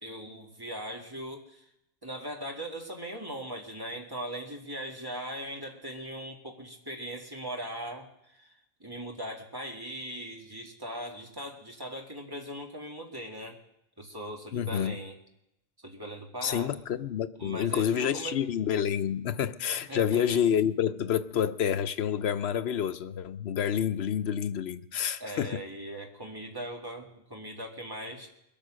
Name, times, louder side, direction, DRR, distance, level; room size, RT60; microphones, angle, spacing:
voice 1, 0.0-1.6 2.0-13.6 14.0-15.2 15.8-16.7 17.4-18.5 19.9-20.4 25.2-28.3, right 1 dB, 20° right, 0 dB, 2.1 m, -40 dB
voice 2, 14.5-15.0 16.4-25.6, left 9 dB, 85° left, 11 dB, 1.0 m, -28 dB
21.5 x 8.9 x 6.3 m, 0.83 s
omnidirectional pair, 1.0 m